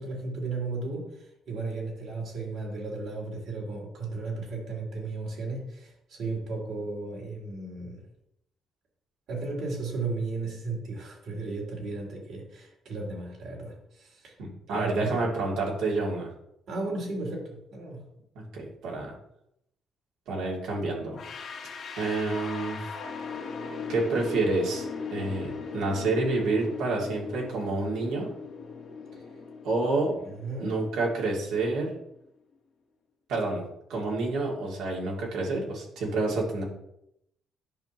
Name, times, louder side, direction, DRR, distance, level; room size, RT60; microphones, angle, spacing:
voice 1, 0.0-8.1 9.3-14.3 14.7-15.2 16.7-18.1 29.1-29.2 30.2-30.8, right 3 dB, 70° right, -2 dB, 3.5 m, -35 dB
voice 2, 14.4-16.3 18.3-19.1 20.3-21.2 22.0-22.8 23.9-28.3 29.6-30.1 30.6-31.9 33.3-36.6, right 2 dB, 90° right, -2 dB, 2.7 m, -28 dB
sound 1, 21.1-32.0, left 5 dB, 60° left, 1.3 m, -39 dB
10.5 x 6.2 x 3.1 m, 0.79 s
cardioid pair, 90°, 0 cm